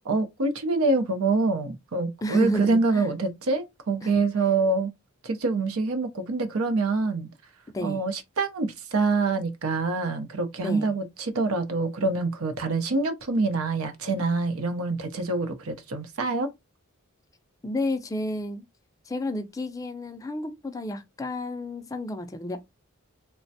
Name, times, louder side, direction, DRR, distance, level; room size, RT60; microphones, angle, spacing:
voice 1, 0.1-4.9 5.2-7.3 7.8-16.5, right 3 dB, 85° right, 0.6 m, -26 dB
voice 2, 2.2-3.1 4.0-4.1 7.7-8.1 10.6-10.9 17.6-18.7 19.1-22.6, left 1 dB, 15° left, 0.3 m, -31 dB
3.2 x 2.1 x 2.6 m
head